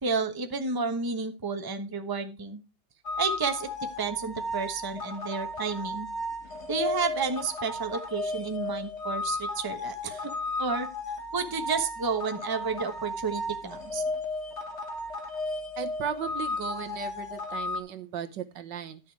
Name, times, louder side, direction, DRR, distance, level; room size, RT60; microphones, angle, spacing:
voice 1, 0.0-2.6 3.2-3.7 4.0-6.1 6.7-10.3 10.6-10.9 11.3-14.0, right 4 dB, 15° right, 7 dB, 0.9 m, -31 dB
sound 1, 3.0-17.8, left 2 dB, 40° left, 2.1 m, -34 dB
voice 2, 15.8-19.0, right 8 dB, 75° right, 10 dB, 1.7 m, -36 dB
11.5 x 7.0 x 4.6 m, 0.28 s
omnidirectional pair, 2.0 m